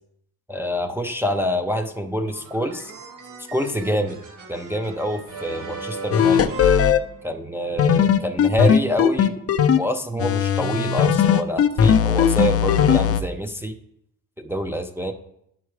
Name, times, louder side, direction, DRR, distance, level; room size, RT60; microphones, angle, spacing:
voice 1, 0.5-2.9 3.5-4.2 4.5-6.4 7.2-9.4 9.8-13.7 14.4-15.1, equal, 5° right, 3 dB, 0.5 m, -26 dB
sound 1, 2.3-7.7, right 4 dB, 60° right, 2.2 m, -38 dB
sound 2, 6.1-7.0 7.8-9.8 10.2-13.2, left 8 dB, 40° left, 0.5 m, -17 dB
10.5 x 5.8 x 4.8 m, 0.76 s
cardioid pair, 150°, 35 cm